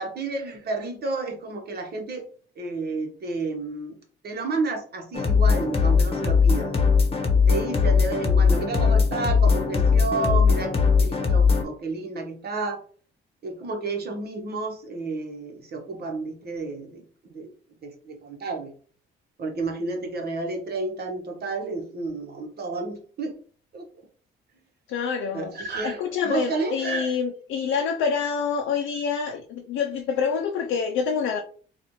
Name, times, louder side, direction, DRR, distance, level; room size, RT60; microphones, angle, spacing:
voice 1, 0.0-2.3 2.6-4.0 4.2-6.7 7.5-12.8 13.4-17.0 17.3-17.5 17.8-18.7 19.4-23.3 23.7-23.8 25.3-27.2, right 3 dB, 55° right, 1.1 m, -31 dB
sound 1, 5.1-11.6, left 5 dB, 30° left, 1.0 m, -20 dB
voice 2, 24.9-25.5 25.8-31.4, left 6 dB, 85° left, 0.5 m, -26 dB
4.1 x 2.4 x 3.0 m
cardioid pair, 90°, 20 cm